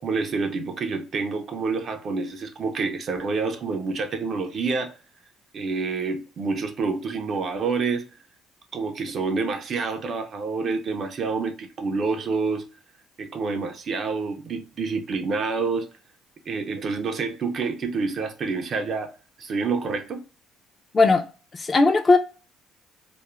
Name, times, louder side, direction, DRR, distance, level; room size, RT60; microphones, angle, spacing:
voice 1, 0.0-4.9 5.5-8.0 8.7-12.6 13.2-15.9 16.5-19.1 19.4-20.2, right 4 dB, 45° right, 0.4 m, -28 dB
voice 2, 21.5-22.2, left 3 dB, 25° left, 0.4 m, -17 dB
2.3 x 2.0 x 2.9 m
cardioid pair, 120°, 0 cm